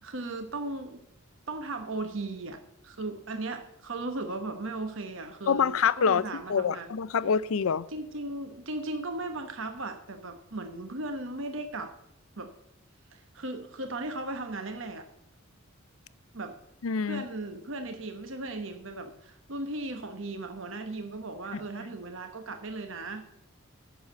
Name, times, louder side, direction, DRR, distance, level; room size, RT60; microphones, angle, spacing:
voice 1, 0.0-1.0 1.5-7.0 7.9-11.9 12.4-12.5 13.1-15.1 16.3-16.5 17.0-23.2, right 2 dB, 60° right, 1.0 m, -37 dB
voice 2, 5.5-6.2 6.5-7.9 16.8-17.2, left 6 dB, 75° left, 0.5 m, -25 dB
9.5 x 7.1 x 6.6 m
head